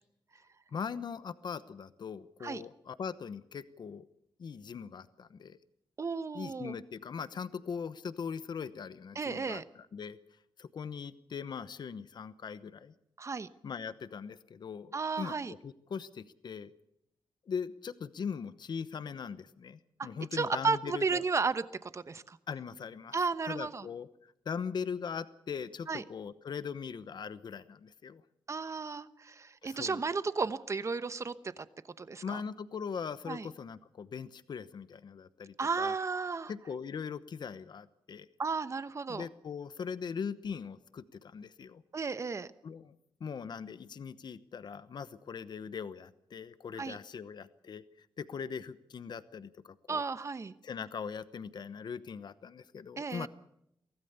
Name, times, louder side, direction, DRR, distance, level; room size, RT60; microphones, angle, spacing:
voice 1, 0.7-4.1 4.4-5.6 6.3-10.2 10.6-12.9 13.6-16.7 17.5-21.2 22.5-23.2 23.4-28.2 29.6-30.0 32.2-35.9 36.5-38.3 39.1-41.8 42.6-42.9 43.2-50.0 50.6-53.3, left 6 dB, 55° left, 14 dB, 1.0 m, -40 dB
voice 2, 6.0-6.7 9.1-9.6 13.2-13.5 14.9-15.5 20.0-22.4 23.1-23.9 25.9-26.0 28.5-31.7 32.0-32.4 33.3-33.5 35.6-36.5 38.4-39.3 41.9-42.5 46.8-47.0 49.9-50.5 53.0-53.3, right 4 dB, 35° right, 14 dB, 1.0 m, -34 dB
23.5 x 17.0 x 6.9 m, 0.77 s
wide cardioid pair, 140°, 9 cm